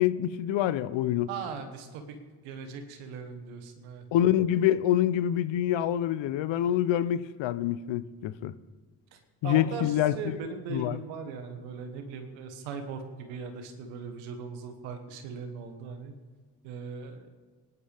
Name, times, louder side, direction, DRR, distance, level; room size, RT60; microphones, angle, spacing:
voice 1, 0.0-1.3 4.1-8.5 9.4-10.1 10.7-11.0, left 11 dB, 75° left, 0.8 m, -26 dB
voice 2, 1.3-2.2 2.4-4.1 9.1-16.1 16.6-17.3, right 5 dB, 90° right, 1.4 m, -39 dB
20.0 x 11.0 x 3.5 m
hypercardioid pair, 45°, 46 cm